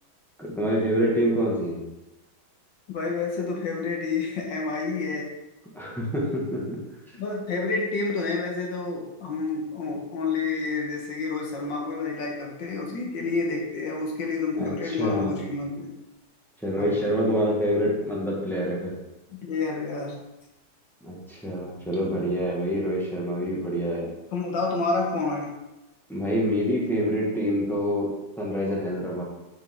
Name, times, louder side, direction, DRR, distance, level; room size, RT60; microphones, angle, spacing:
voice 1, 0.4-1.8 5.7-6.8 14.6-15.4 16.6-18.9 21.0-24.1 26.1-28.1 28.4-29.2, equal, ahead, -5 dB, 1.5 m, -26 dB
voice 2, 2.9-5.3 7.1-15.9 16.8-17.1 19.3-20.2 24.3-25.5, left 4 dB, 65° left, 0 dB, 1.8 m, -29 dB
6.8 x 5.9 x 3.7 m, 0.97 s
omnidirectional pair, 2.3 m